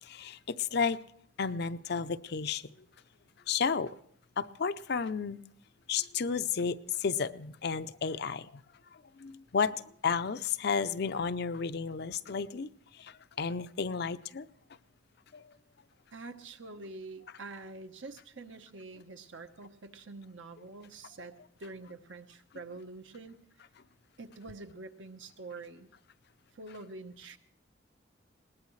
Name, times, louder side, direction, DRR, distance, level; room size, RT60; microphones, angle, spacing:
voice 1, 0.0-1.0 1.4-2.7 3.5-3.9 4.4-5.4 5.9-8.6 9.2-9.7 10.0-12.7 13.0-14.5 15.3-15.4, left 5 dB, 55° left, 12 dB, 0.5 m, -32 dB
voice 2, 16.1-21.3 21.6-23.4 24.2-25.9 26.5-27.4, right 3 dB, 75° right, 7 dB, 1.1 m, -46 dB
21.5 x 18.5 x 3.2 m, 0.69 s
head